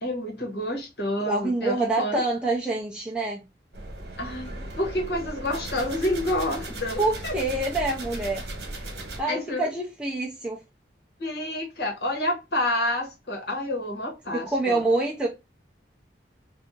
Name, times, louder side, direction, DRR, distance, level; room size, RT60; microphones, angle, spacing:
voice 1, 0.0-2.2 4.2-7.3 9.3-9.7 11.2-14.8, left 1 dB, 65° left, 1.3 m, -29 dB
voice 2, 1.3-3.4 7.0-8.4 8.7-10.6 14.3-15.3, right 2 dB, 5° right, 0.5 m, -26 dB
sound 1, 3.7-9.2, right 1 dB, 70° right, 1.1 m, -37 dB
2.8 x 2.5 x 3.6 m
head